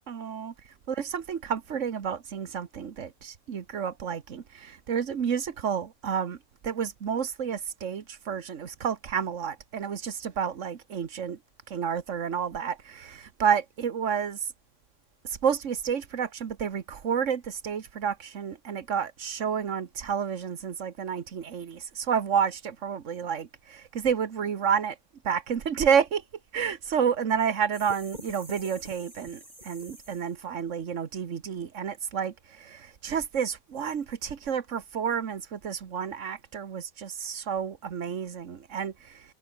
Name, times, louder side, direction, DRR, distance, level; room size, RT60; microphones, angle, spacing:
voice 1, 0.1-0.5 0.9-6.4 6.6-11.4 11.7-14.4 15.2-25.0 25.2-26.2 26.5-39.2, right 7 dB, 90° right, 1.6 m, -30 dB
sound 1, 27.7-30.5, right 1 dB, 35° right, 8.0 m, -46 dB
omnidirectional pair, 1.2 m